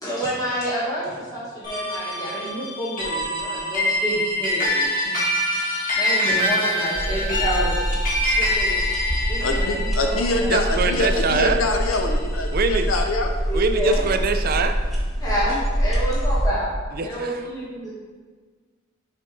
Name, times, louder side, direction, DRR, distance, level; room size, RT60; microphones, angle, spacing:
voice 1, 0.0-5.2 5.9-7.8 8.4-8.8 9.3-10.5 13.5-14.0 15.2-16.7 17.0-17.9, right 1 dB, 20° left, -8 dB, 1.6 m, -28 dB
sound 1, 1.6-12.2, left 1 dB, 40° left, 1.7 m, -25 dB
sound 2, 6.9-16.5, equal, ahead, 1.0 m, -25 dB
voice 2, 9.4-13.3, left 2 dB, 80° left, 4 dB, 0.7 m, -25 dB
voice 3, 10.5-11.6 12.5-12.9 13.5-14.8 17.0-17.4, right 4 dB, 45° right, 8 dB, 0.4 m, -23 dB
6.7 x 4.5 x 3.8 m, 1.5 s
head